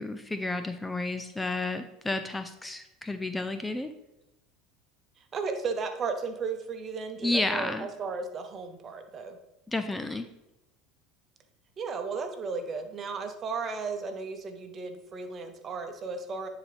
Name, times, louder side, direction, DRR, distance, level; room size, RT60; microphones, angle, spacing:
voice 1, 0.0-3.9 7.2-7.9 9.7-10.3, left 2 dB, 10° left, 9 dB, 0.4 m, -31 dB
voice 2, 5.3-9.4 11.8-16.5, right 4 dB, 35° right, 7 dB, 1.0 m, -34 dB
9.7 x 4.0 x 3.4 m, 0.94 s
hypercardioid pair, 90°, 0 cm